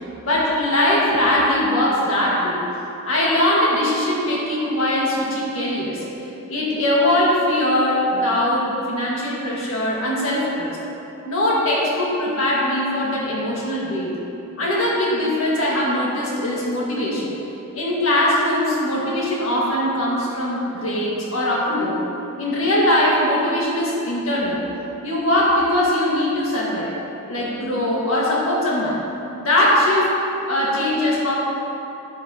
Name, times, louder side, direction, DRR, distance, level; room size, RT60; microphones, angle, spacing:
voice 1, 0.2-2.6 3.0-6.0 6.5-10.8 11.2-14.2 14.6-17.3 17.7-22.0 22.4-24.6 25.0-26.9 27.3-29.0 29.4-30.1 30.5-31.4, left 1 dB, 70° left, -5 dB, 1.8 m, -21 dB
11.0 x 9.0 x 2.9 m, 3.0 s
head